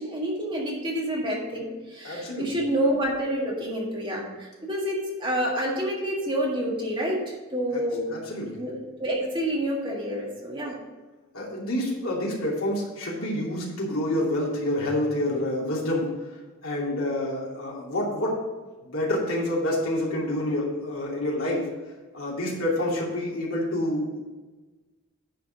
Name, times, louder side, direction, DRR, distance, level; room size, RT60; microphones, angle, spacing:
voice 1, 0.0-8.1 8.5-10.8, equal, 25° right, -2 dB, 1.8 m, -28 dB
voice 2, 2.0-2.5 7.7-7.8 8.1-8.6 11.3-18.4 18.8-21.7 22.1-24.2, left 1 dB, 80° left, -4 dB, 2.7 m, -28 dB
10.0 x 4.1 x 6.5 m, 1.2 s
head